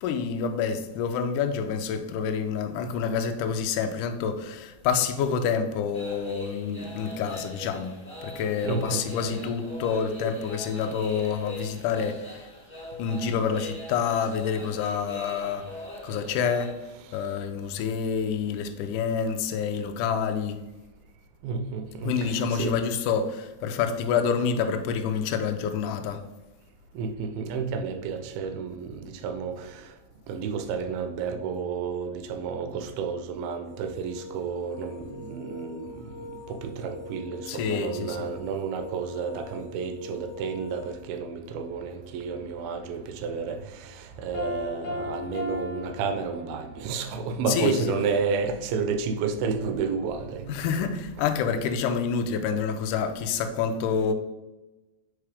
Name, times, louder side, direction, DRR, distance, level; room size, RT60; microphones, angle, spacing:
voice 1, 0.0-8.0 8.2-12.5 13.0-15.7 16.0-16.8 17.1-20.6 22.0-26.2 37.5-38.3 47.5-47.9 50.5-54.1, left 6 dB, 85° left, 1.8 m, -28 dB
sound 1, 5.9-16.7, equal, 10° left, 0.7 m, -42 dB
voice 2, 8.6-9.0 9.3-9.4 21.4-22.7 26.9-29.9 30.3-36.1 36.5-50.4, right 5 dB, 80° right, 2.4 m, -31 dB
sound 2, 33.6-41.0, left 3 dB, 15° right, 1.2 m, -44 dB
Piano, 44.3-46.9, left 2 dB, 55° left, 1.8 m, -35 dB
4.9 x 4.7 x 4.9 m
omnidirectional pair, 4.3 m